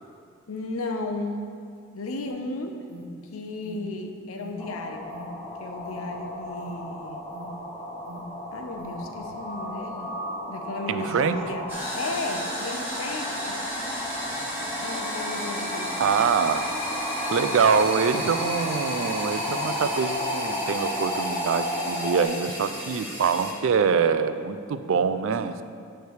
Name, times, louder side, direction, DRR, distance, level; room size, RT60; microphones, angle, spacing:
voice 1, 0.5-1.4 1.9-2.8 3.3-5.1 5.6-7.2 8.5-10.1 10.5-11.7 11.9-13.6 14.8-16.1, left 2 dB, 90° left, 4 dB, 0.7 m, -34 dB
Alarm, 2.3-9.0, equal, 85° right, 0.9 m, -45 dB
sound 1, 4.6-22.2, left 1 dB, 15° left, 0.9 m, -33 dB
voice 2, 10.9-11.4 16.0-16.7 17.3-25.6, right 6 dB, 65° right, 11 dB, 0.4 m, -24 dB
sound 2, 11.7-23.5, equal, 10° right, 1.4 m, -34 dB
9.3 x 3.4 x 6.4 m, 2.2 s
head